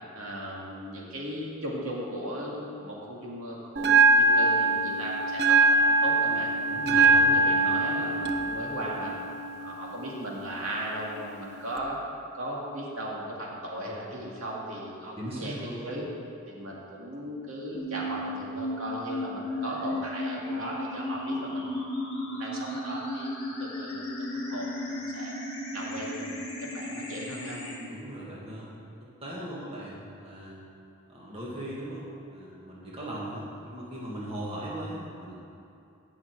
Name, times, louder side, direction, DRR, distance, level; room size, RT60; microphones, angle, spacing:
voice 1, 0.1-6.5 6.9-9.1 9.6-12.0 12.3-15.5 15.8-16.0 16.5-21.7 22.1-23.3 23.6-25.4 25.7-27.6, right 1 dB, 75° right, -4 dB, 2.3 m, -37 dB
Bell, 3.8-11.8, right 3 dB, 50° right, 0.7 m, -24 dB
voice 2, 6.7-7.2 15.2-16.0 27.9-28.9 29.2-30.6 31.1-35.3, right 1 dB, 25° right, -6 dB, 1.9 m, -38 dB
sound 1, 17.7-27.8, left 1 dB, 25° left, 2.3 m, -34 dB
17.5 x 6.3 x 4.8 m, 2.6 s
head